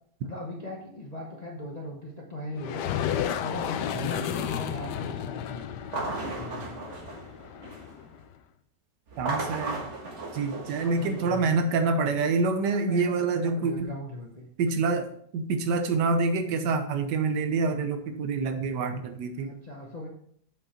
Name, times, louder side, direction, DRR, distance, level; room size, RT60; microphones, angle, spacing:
voice 1, 0.2-2.8 3.3-5.8 6.3-6.8 10.8-11.7 12.7-14.5 19.4-20.1, left 1 dB, 30° left, -2 dB, 0.9 m, -38 dB
sound 1, 2.6-8.2, left 9 dB, 90° left, 1.2 m, -33 dB
sound 2, 5.8-8.0 9.1-11.6, right 3 dB, 45° right, 1.7 m, -36 dB
voice 2, 9.2-9.9 10.3-13.9 14.6-19.5, right 4 dB, 85° right, 7 dB, 1.5 m, -27 dB
7.8 x 5.2 x 4.3 m, 0.65 s
omnidirectional pair, 1.8 m